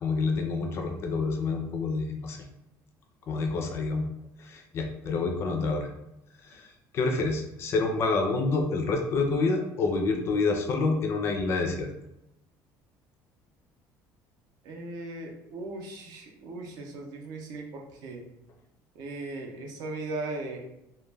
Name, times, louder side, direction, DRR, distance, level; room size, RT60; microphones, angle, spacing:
voice 1, 0.0-2.5 3.3-4.1 4.4-5.9 6.4-11.9, left 3 dB, 35° left, 3 dB, 0.3 m, -28 dB
voice 2, 14.6-18.2 18.9-20.6, right 2 dB, 60° right, 2 dB, 0.5 m, -38 dB
2.2 x 2.1 x 3.2 m, 0.87 s
cardioid pair, 175°, 7 cm